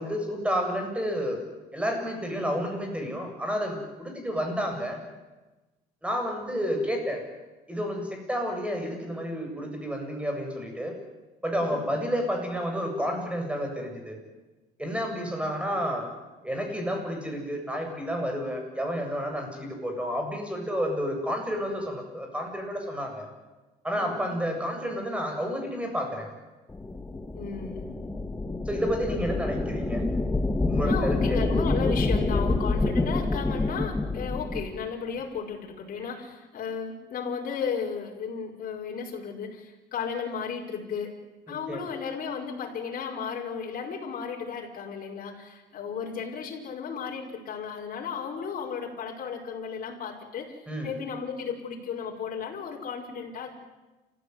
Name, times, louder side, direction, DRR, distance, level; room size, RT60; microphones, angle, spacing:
voice 1, 0.0-1.4 1.7-5.0 6.0-7.2 7.7-10.9 11.4-14.2 14.8-16.1 16.4-23.3 23.8-26.3 28.7-30.0 30.7-31.4 41.5-41.8 50.7-50.9, equal, 5° right, 3 dB, 7.8 m, -30 dB
voice 2, 11.6-11.9 15.0-15.4 24.0-24.4 27.3-27.9 30.8-41.2 41.5-50.6 50.8-53.5, left 6 dB, 55° left, 0 dB, 5.4 m, -34 dB
sound 1, 26.7-34.8, left 2 dB, 15° left, 1.5 m, -27 dB
30.0 x 15.0 x 9.7 m, 1.1 s
cardioid pair, 110°, 17 cm